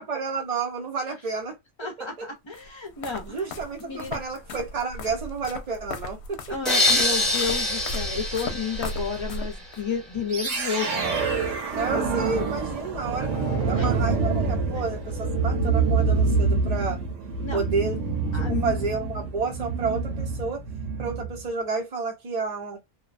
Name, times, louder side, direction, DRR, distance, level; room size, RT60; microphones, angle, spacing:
voice 1, 0.0-1.6 2.0-2.3 3.2-6.6 11.7-13.3 13.6-17.0 17.5-18.0 18.3-20.6 21.0-22.8, right 4 dB, 45° right, 0.6 m, -30 dB
voice 2, 1.8-3.5 3.8-4.2 6.5-11.3 13.2-13.3 13.8-13.9 14.7-14.8 17.4-17.6 18.3-18.8, left 6 dB, 30° left, 0.5 m, -32 dB
sound 1, 2.5-9.8, left 2 dB, 70° left, 0.8 m, -37 dB
sound 2, 6.6-9.7, left 2 dB, ahead, 0.9 m, -25 dB
sound 3, 10.3-21.4, right 4 dB, 75° right, 1.2 m, -26 dB
2.7 x 2.1 x 2.4 m
omnidirectional pair, 1.3 m